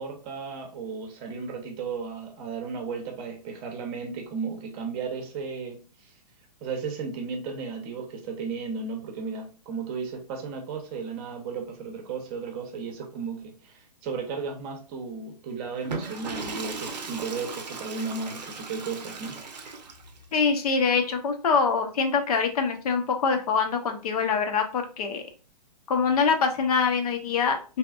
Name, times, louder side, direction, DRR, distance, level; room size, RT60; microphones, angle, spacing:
voice 1, 0.0-6.1 6.6-19.4, right 5 dB, 35° right, 3 dB, 0.7 m, -34 dB
Water / Toilet flush, 15.7-20.3, right 4 dB, 80° right, 0.6 m, -37 dB
voice 2, 20.3-25.2 25.9-27.8, left 5 dB, 60° left, 5 dB, 0.7 m, -24 dB
2.7 x 2.4 x 2.3 m, 0.36 s
hypercardioid pair, 120°, 21 cm